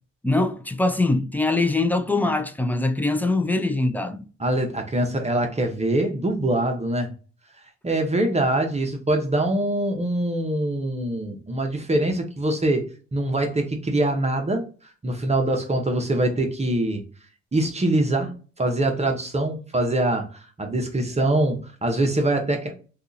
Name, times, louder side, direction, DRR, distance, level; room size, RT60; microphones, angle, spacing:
voice 1, 0.2-4.3, left 2 dB, 5° left, 0.4 m, -23 dB
voice 2, 4.4-7.1 7.8-12.8 13.1-14.7 15.0-17.0 17.5-22.7, right 1 dB, 20° right, 0.8 m, -24 dB
2.7 x 2.4 x 3.8 m
cardioid pair, 90°, 30 cm